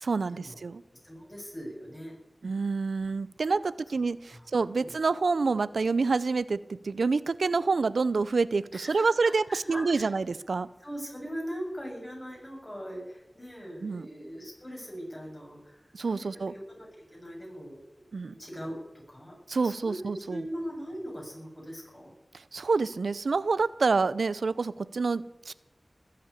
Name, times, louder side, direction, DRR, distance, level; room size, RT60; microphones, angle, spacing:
voice 1, 0.0-0.8 2.4-10.7 13.8-14.1 15.9-16.5 18.1-18.3 19.5-20.4 22.5-25.5, right 4 dB, 90° right, 17 dB, 0.5 m, -27 dB
voice 2, 1.0-2.1 3.4-3.5 4.3-4.5 4.7-4.9 8.7-10.1 10.8-18.8 19.1-19.3 19.6-22.1, equal, 25° left, -1 dB, 7.7 m, -41 dB
19.5 x 8.5 x 8.4 m, 0.97 s
wide cardioid pair, 60°, 0 cm